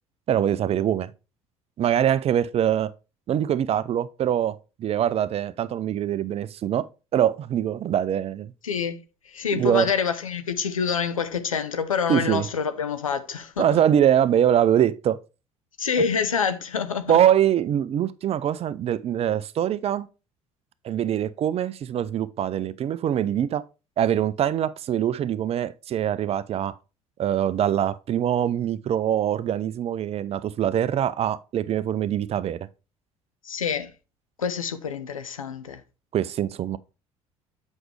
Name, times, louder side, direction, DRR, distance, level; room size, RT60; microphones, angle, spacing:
voice 1, 0.3-1.1 1.8-2.9 3.3-6.9 7.1-8.5 9.6-9.9 12.1-12.5 13.6-15.2 17.1-20.1 20.8-23.6 24.0-26.7 27.2-32.7 36.1-36.8, right 10 dB, 35° right, 0.5 m, -23 dB
voice 2, 8.6-9.0 9.3-13.8 15.8-17.2 33.4-33.9 34.4-35.8, left 6 dB, 85° left, 0.7 m, -27 dB
7.8 x 5.3 x 3.2 m
figure-of-eight pair, 60°, 17 cm